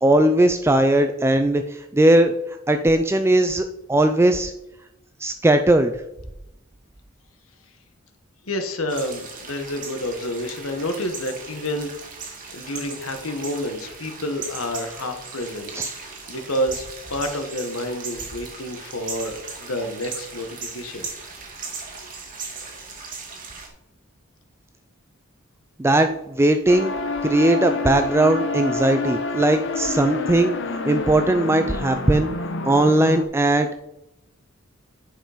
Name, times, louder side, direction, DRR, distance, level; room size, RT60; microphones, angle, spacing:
voice 1, 0.0-2.3 2.7-4.5 5.2-5.9 15.7-15.9 25.8-26.9 27.2-30.6 30.9-32.3 32.6-33.7, right 1 dB, 10° right, 7 dB, 0.4 m, -19 dB
voice 2, 8.4-11.9 12.5-15.7 16.0-21.1, left 1 dB, 85° left, 6 dB, 1.4 m, -29 dB
sound 1, 8.9-23.7, right 4 dB, 40° right, 2.0 m, -37 dB
sound 2, 26.7-33.2, left 3 dB, 60° left, 1.0 m, -28 dB
10.5 x 5.4 x 5.0 m, 0.89 s
head